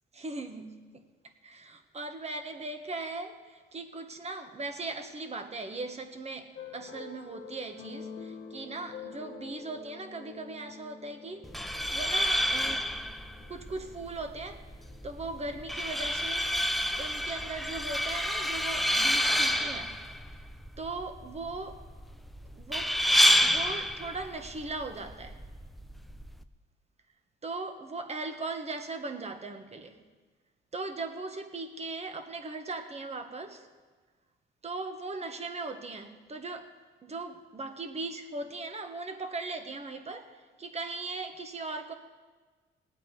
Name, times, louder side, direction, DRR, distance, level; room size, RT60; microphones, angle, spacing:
voice 1, 0.1-1.0 1.4-11.5 11.9-12.9 13.5-14.7 15.0-16.6 17.0-20.0 20.3-20.4 20.8-21.7 22.6-23.0 23.4-25.4 27.4-30.0 30.7-33.7 34.6-36.7 37.0-41.9, right 3 dB, 35° right, 7 dB, 1.3 m, -39 dB
sound 1, 6.6-15.8, left 6 dB, 80° left, 1.4 m, -48 dB
sound 2, 11.4-26.4, equal, ahead, 0.6 m, -29 dB
19.0 x 8.2 x 4.9 m, 1.4 s
cardioid pair, 90°, 20 cm